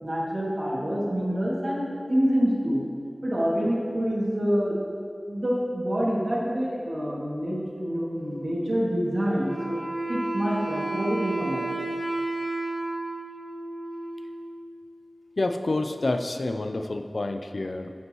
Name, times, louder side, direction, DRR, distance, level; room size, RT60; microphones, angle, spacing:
voice 1, 0.0-2.8 3.2-4.8 5.3-9.8 10.1-11.6, equal, 60° right, -6 dB, 2.3 m, -26 dB
Wind instrument woodwind instrument, 9.3-14.8, right 2 dB, 80° right, 2.1 m, -32 dB
voice 2, 15.4-17.9, left 2 dB, 80° left, 7 dB, 0.5 m, -28 dB
11.5 x 8.3 x 3.1 m, 2.3 s
wide cardioid pair, 50°, 0 cm